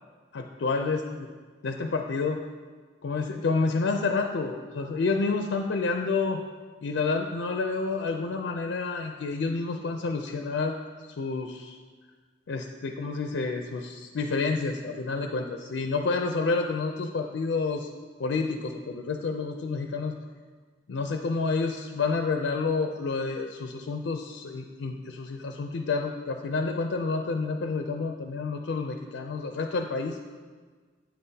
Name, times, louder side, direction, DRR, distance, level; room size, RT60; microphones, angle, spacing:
voice 1, 0.3-1.3 1.6-2.4 3.0-6.4 6.8-10.8 11.2-11.8 12.5-17.9 18.2-20.1 20.9-30.2, left 4 dB, 80° left, 4 dB, 0.4 m, -29 dB
8.7 x 5.6 x 2.7 m, 1.5 s
head